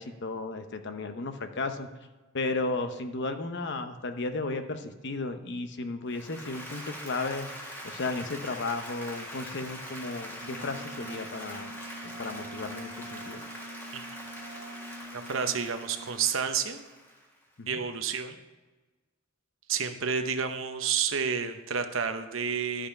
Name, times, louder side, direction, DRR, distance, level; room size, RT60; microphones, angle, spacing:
voice 1, 0.0-1.9 2.3-11.7 12.0-13.4 17.6-17.8, left 3 dB, 60° left, 8 dB, 0.8 m, -34 dB
Applause, 6.1-17.4, equal, 10° left, 1.7 m, -43 dB
Wind instrument woodwind instrument, 10.4-16.4, right 1 dB, 40° right, 0.9 m, -45 dB
voice 2, 15.1-16.8 17.7-18.4 19.7-22.9, right 6 dB, 75° right, 8 dB, 0.8 m, -30 dB
11.5 x 5.3 x 5.7 m, 1.2 s
head